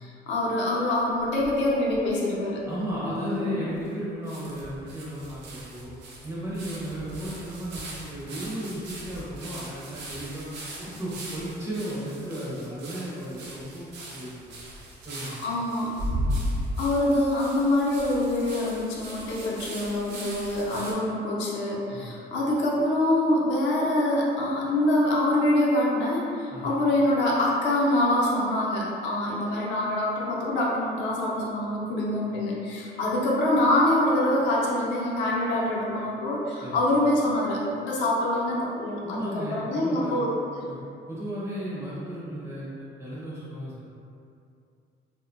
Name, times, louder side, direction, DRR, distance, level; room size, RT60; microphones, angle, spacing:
voice 1, 0.0-2.6 3.0-3.7 15.3-15.9 16.8-40.3 40.5-40.6, left 1 dB, 80° left, -4 dB, 0.5 m, -25 dB
sound 1, 1.2-2.1 2.6-2.7 2.9-3.0 3.8-3.9 4.3-20.9, equal, 65° right, 0.5 m, -37 dB
voice 2, 2.7-5.9 6.2-10.5 10.8-13.8 14.1-14.5 15.0-15.4 16.0-16.4 20.7-20.8 21.9-22.2 26.5-26.8 36.6-36.8 39.0-40.2 40.7-40.8 41.1-43.9, equal, 15° right, -8 dB, 0.5 m, -34 dB
2.6 x 2.1 x 2.5 m, 2.5 s
cardioid pair, 180°, 19 cm